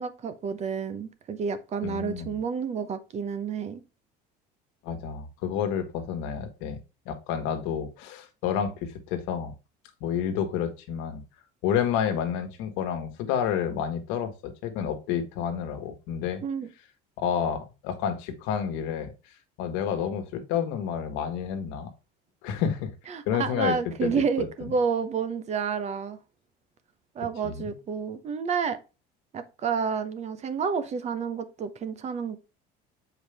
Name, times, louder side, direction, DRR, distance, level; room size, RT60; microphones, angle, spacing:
voice 1, 0.0-3.8 16.4-16.7 23.1-26.2 27.1-28.8 29.3-32.4, right 6 dB, 35° right, 0.8 m, -30 dB
voice 2, 1.8-2.4 4.8-6.8 7.0-9.5 10.0-11.2 11.6-16.4 17.2-19.1 19.6-21.9 22.4-22.9 23.3-24.5 27.4-27.7, left 8 dB, 80° left, 1.4 m, -30 dB
7.2 x 4.7 x 3.3 m
cardioid pair, 140°, 19 cm